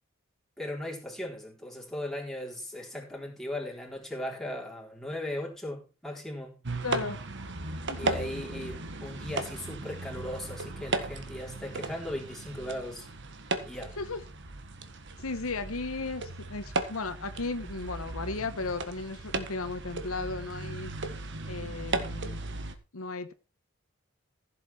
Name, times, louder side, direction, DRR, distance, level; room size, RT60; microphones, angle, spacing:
voice 1, 0.6-6.6 8.0-13.1 13.6-14.0, left 1 dB, ahead, 4.0 m, -38 dB
sound 1, 6.6-22.7, right 2 dB, 60° right, 1.6 m, -36 dB
voice 2, 6.8-7.2 7.9-8.2 14.0-14.2 15.2-20.9 21.5-22.4 22.9-23.3, left 3 dB, 80° left, 1.2 m, -35 dB
15.5 x 7.8 x 4.4 m
head